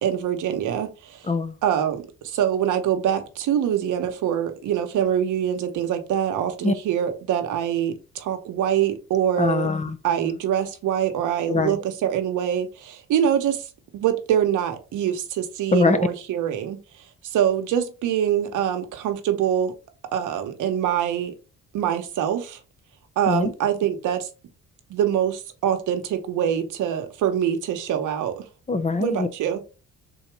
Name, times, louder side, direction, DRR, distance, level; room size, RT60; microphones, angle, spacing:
voice 1, 0.0-1.3 1.6-9.7 10.0-13.7 13.9-16.8 17.3-19.7 20.1-21.3 21.7-22.6 23.2-24.3 24.9-28.4 29.0-29.6, right 9 dB, 80° right, 0.9 m, -24 dB
voice 2, 1.3-1.6 6.6-6.7 9.4-10.0 11.5-11.8 15.7-16.0 23.3-23.5 28.7-29.3, left 3 dB, 25° left, 0.6 m, -22 dB
3.9 x 2.8 x 4.6 m
cardioid pair, 90°, 30 cm